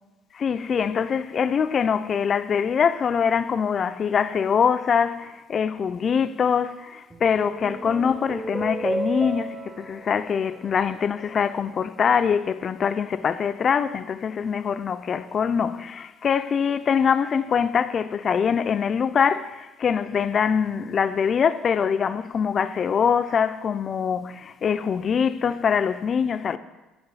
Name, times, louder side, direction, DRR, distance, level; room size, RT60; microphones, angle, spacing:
voice 1, 0.3-26.6, left 7 dB, 45° left, 0.4 m, -23 dB
sound 1, 7.1-11.7, right 3 dB, 20° right, 0.7 m, -33 dB
8.1 x 5.0 x 4.0 m
hypercardioid pair, 65°, 0 cm